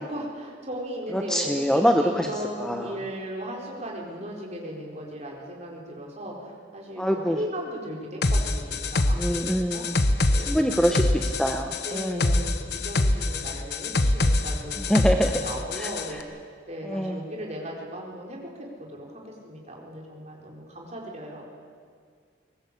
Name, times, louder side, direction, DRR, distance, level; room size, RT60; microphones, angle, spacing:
voice 1, 0.0-9.8 10.3-11.3 11.8-16.4 16.7-21.4, equal, 35° right, -1 dB, 4.4 m, -37 dB
voice 2, 1.1-2.3 2.6-2.9 7.0-7.4 9.2-10.0 10.5-12.3 14.8-15.3 15.8-15.9 16.8-17.2, equal, 5° left, 4 dB, 0.9 m, -25 dB
sound 1, 8.2-16.1, left 2 dB, 55° left, 1.1 m, -25 dB
22.0 x 20.0 x 8.4 m, 2.1 s
head